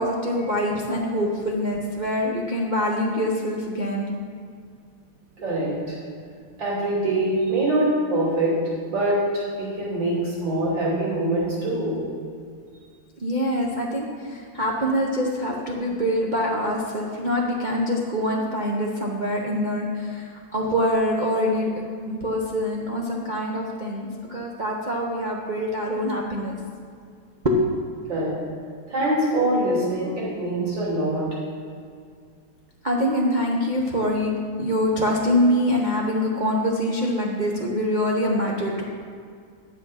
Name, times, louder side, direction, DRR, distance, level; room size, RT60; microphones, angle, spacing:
voice 1, 0.0-4.1 13.2-26.6 27.4-27.9 32.8-34.3 34.6-38.8, equal, 75° right, -3 dB, 0.4 m, -24 dB
voice 2, 5.4-6.0 6.6-8.5 8.9-12.0 28.1-28.3 28.9-31.2, right 1 dB, 60° right, -7 dB, 3.7 m, -24 dB
10.5 x 7.3 x 5.7 m, 2.2 s
omnidirectional pair, 2.4 m